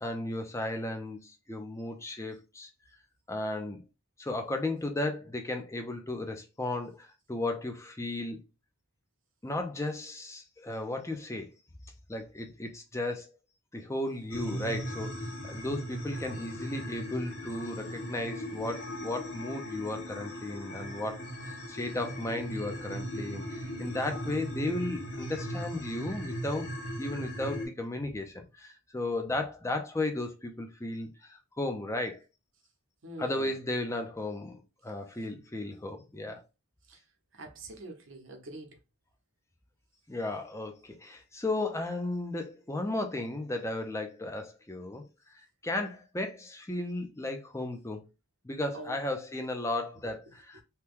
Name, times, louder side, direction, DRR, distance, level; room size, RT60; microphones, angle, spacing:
voice 1, 0.0-2.7 3.3-3.8 4.2-8.4 9.4-11.5 12.1-13.3 13.7-32.2 33.2-36.4 40.1-45.0 45.6-48.0 48.4-50.6, left 2 dB, 15° left, 0.5 m, -35 dB
sound 1, 14.3-27.7, equal, 80° left, 1.4 m, -38 dB
voice 2, 33.0-33.5 36.9-37.0 37.4-38.7 48.7-49.0, right 2 dB, 70° right, 0.9 m, -44 dB
2.9 x 2.2 x 3.4 m
head